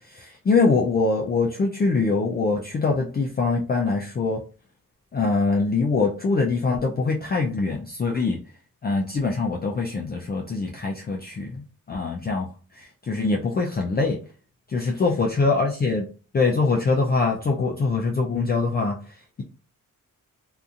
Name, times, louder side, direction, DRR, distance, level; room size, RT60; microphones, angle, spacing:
voice 1, 0.1-4.4 5.1-8.4 8.8-12.5 13.0-14.2 14.7-16.1 16.3-19.0, left 3 dB, 30° left, -1 dB, 0.4 m, -23 dB
2.8 x 2.4 x 2.4 m, 0.37 s
wide cardioid pair, 110°, 33 cm